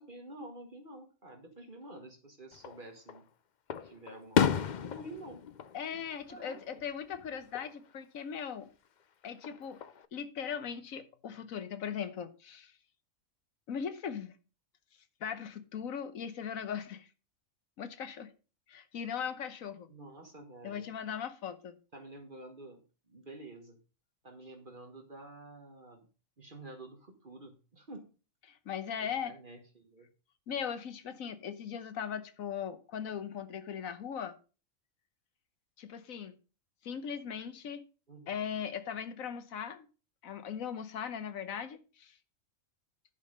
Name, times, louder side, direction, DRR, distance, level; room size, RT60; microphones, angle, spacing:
voice 1, 0.0-3.2 3.8-5.4 6.3-6.8 19.9-20.9 21.9-23.8 24.2-26.1 26.4-28.1 29.0-30.1 38.1-38.4, right 2 dB, 40° right, 1.5 m, -49 dB
Fireworks, 2.5-3.2 3.7-6.8 7.1-7.7 9.2-10.1, left 8 dB, 50° left, 0.5 m, -33 dB
voice 2, 5.7-8.7 9.2-9.8 10.1-12.7 13.7-14.3 15.2-17.1 17.8-18.3 18.7-19.9 20.6-21.8 28.5-29.3 30.5-34.4 35.8-36.3 36.8-37.8 38.3-39.9 40.2-42.1, left 7 dB, 90° left, 1.4 m, -39 dB
10.5 x 5.5 x 5.3 m
omnidirectional pair, 1.4 m